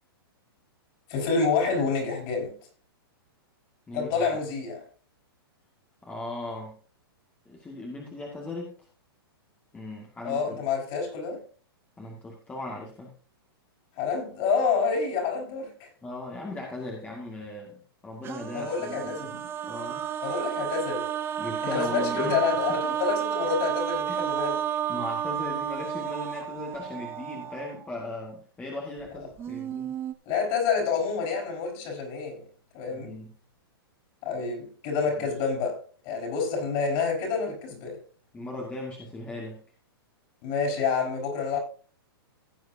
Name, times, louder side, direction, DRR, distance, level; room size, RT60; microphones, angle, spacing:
voice 1, 1.1-2.5 3.9-4.8 10.2-11.4 14.0-15.9 18.5-19.4 20.2-21.1 21.6-24.6 30.2-32.4 32.7-33.1 34.2-35.8 36.0-38.0 40.4-41.6, left 5 dB, 40° left, 5.2 m, -28 dB
voice 2, 3.9-4.2 6.0-6.7 7.5-8.7 9.7-10.6 12.0-13.1 16.0-17.7 18.0-20.4 21.4-22.8 24.1-24.2 24.9-29.9 32.9-33.3 35.2-35.3 38.3-39.6, left 2 dB, 10° left, 2.2 m, -38 dB
sound 1, 18.2-27.8 29.1-29.2 29.4-30.1, right 10 dB, 20° right, 0.7 m, -31 dB
16.5 x 7.9 x 2.8 m
hypercardioid pair, 140°, 13 cm